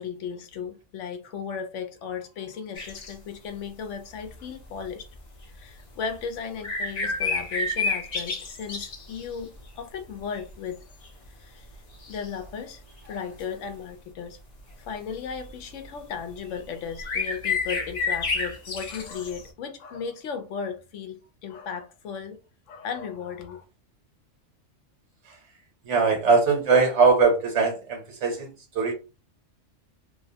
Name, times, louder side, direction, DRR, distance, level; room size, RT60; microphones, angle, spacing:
voice 1, 0.0-5.1 5.5-10.8 11.4-11.7 12.1-12.8 13.1-14.4 14.8-22.4 22.7-23.6, left 6 dB, 85° left, 0.9 m, -36 dB
sound 1, 2.8-3.1 5.2-5.3 6.0-6.1 6.6-9.4 10.1-10.5 11.0-11.1 12.0-12.5 13.1-13.4 15.3-15.5 16.6-16.7 16.9-19.5, left 3 dB, 45° left, 0.5 m, -30 dB
voice 2, 25.8-28.9, right 4 dB, 75° right, 1.2 m, -21 dB
2.8 x 2.0 x 2.7 m
omnidirectional pair, 1.3 m